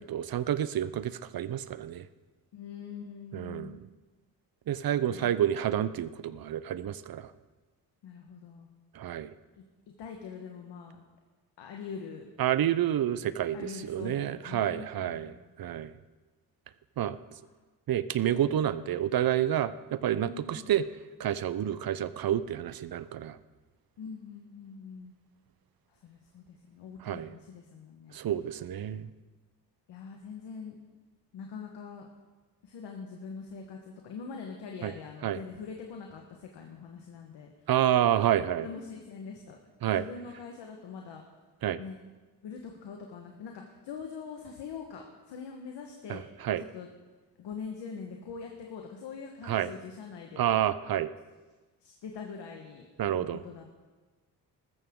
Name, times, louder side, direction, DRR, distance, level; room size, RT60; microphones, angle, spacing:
voice 1, 0.0-2.1 3.3-3.8 4.7-7.3 8.9-9.3 12.4-15.9 17.0-17.2 17.9-20.8 21.2-23.4 27.0-27.3 28.1-29.1 34.8-34.9 35.2-35.4 37.7-38.7 39.8-40.0 41.6-41.8 46.1-46.6 49.5-49.7 50.4-51.1 53.0-53.4, right 11 dB, 60° right, 15 dB, 0.7 m, -29 dB
voice 2, 2.5-3.8 5.1-5.4 8.0-8.7 10.0-11.0 11.6-12.3 13.5-15.4 20.1-20.7 24.0-25.1 25.9-28.2 29.9-30.8 31.3-32.1 32.6-37.5 38.6-39.6 39.8-41.2 41.8-42.0 42.4-46.3 46.6-46.9 47.4-50.4 51.8-52.9 53.3-53.8, left 5 dB, 85° left, 2 dB, 1.4 m, -43 dB
14.0 x 14.0 x 3.7 m, 1.3 s
cardioid pair, 70°, 41 cm